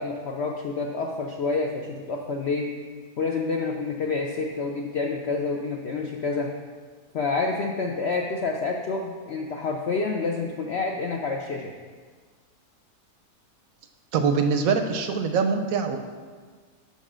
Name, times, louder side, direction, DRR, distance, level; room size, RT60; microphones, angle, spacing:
voice 1, 0.0-2.7 3.2-6.5 7.1-11.7, left 4 dB, 75° left, 1 dB, 0.6 m, -28 dB
voice 2, 14.1-16.0, right 5 dB, 70° right, 6 dB, 0.9 m, -23 dB
5.5 x 5.1 x 6.1 m, 1.5 s
omnidirectional pair, 1.7 m